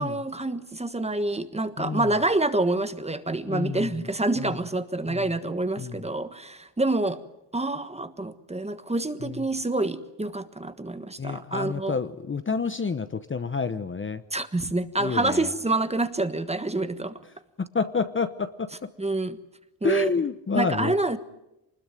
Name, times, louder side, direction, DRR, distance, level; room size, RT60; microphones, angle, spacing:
voice 1, 0.0-7.2 7.5-12.0 14.3-17.2 19.0-19.4 19.8-20.1 20.5-21.2, right 2 dB, 15° right, 11 dB, 1.4 m, -27 dB
voice 2, 1.8-2.1 3.5-3.9 5.1-5.3 5.8-6.0 9.2-9.4 11.2-14.2 15.0-15.5 17.6-18.9 19.8-20.9, left 5 dB, 25° left, 11 dB, 0.9 m, -29 dB
25.0 x 20.5 x 9.1 m, 0.90 s
cardioid pair, 110°, 44 cm